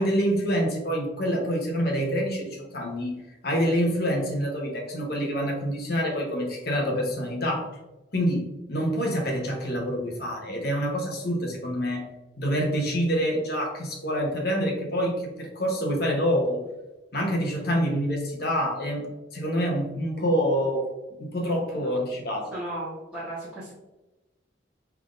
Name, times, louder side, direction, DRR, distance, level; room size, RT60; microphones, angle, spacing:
voice 1, 0.0-3.1 3.4-7.7 8.1-8.4 8.7-12.0 12.4-16.6 17.1-20.9 21.2-22.5, equal, 55° left, 0 dB, 1.0 m, -26 dB
voice 2, 22.5-23.7, right 1 dB, 5° right, -11 dB, 1.3 m, -36 dB
5.6 x 3.5 x 2.6 m, 1.0 s
head